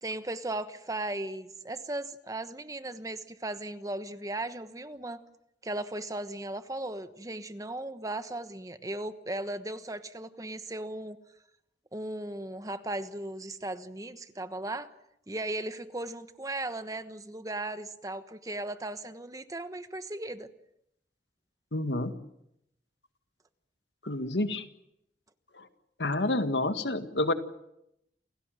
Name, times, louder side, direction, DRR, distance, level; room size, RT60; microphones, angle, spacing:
voice 1, 0.0-5.2 5.6-11.2 11.9-14.9 15.3-20.5, right 2 dB, 20° right, 11 dB, 1.2 m, -37 dB
voice 2, 21.7-22.1 24.0-24.6 25.5-25.7 26.0-27.3, left 2 dB, 85° left, 9 dB, 1.9 m, -29 dB
29.0 x 17.0 x 9.1 m, 0.80 s
head